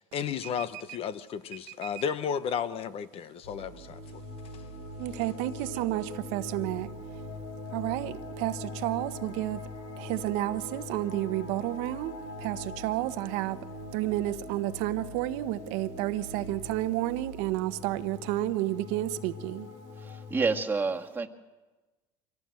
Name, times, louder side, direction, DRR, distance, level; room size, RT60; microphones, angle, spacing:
voice 1, 0.0-4.2, left 7 dB, 45° left, 1.1 m, -33 dB
sound 1, 3.4-20.6, left 1 dB, 70° left, 6.4 m, -42 dB
voice 2, 5.0-6.9 7.7-9.6 10.0-13.6 13.9-19.7, right 16 dB, 70° right, 1.0 m, -31 dB
voice 3, 20.0-21.3, right 4 dB, 15° right, 1.8 m, -29 dB
25.0 x 17.5 x 7.7 m
supercardioid pair, 105°, 13 cm